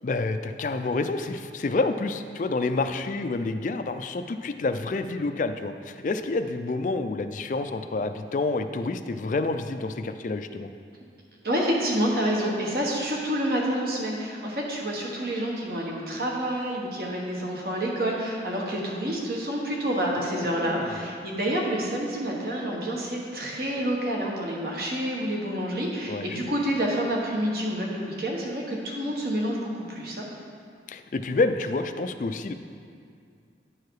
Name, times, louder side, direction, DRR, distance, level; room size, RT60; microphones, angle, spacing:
voice 1, 0.0-10.7 20.2-21.1 26.1-26.4 30.9-32.5, left 3 dB, 45° left, 9 dB, 0.3 m, -28 dB
voice 2, 11.4-30.3, equal, 55° right, -2 dB, 1.3 m, -28 dB
10.0 x 4.7 x 4.7 m, 2.3 s
head